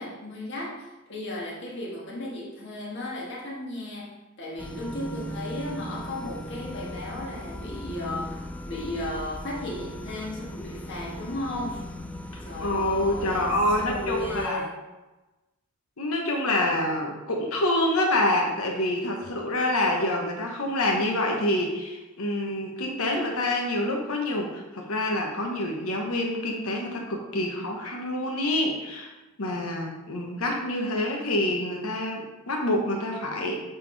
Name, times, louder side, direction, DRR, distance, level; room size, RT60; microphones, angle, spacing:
voice 1, 0.0-11.9 12.4-14.8, left 1 dB, 55° left, -4 dB, 1.5 m, -35 dB
sound 1, 4.6-14.5, equal, 5° left, 0.3 m, -38 dB
voice 2, 12.3-14.6 16.0-29.1 29.4-33.6, left 1 dB, 90° left, 1 dB, 1.1 m, -27 dB
7.5 x 3.7 x 3.4 m, 1.1 s
head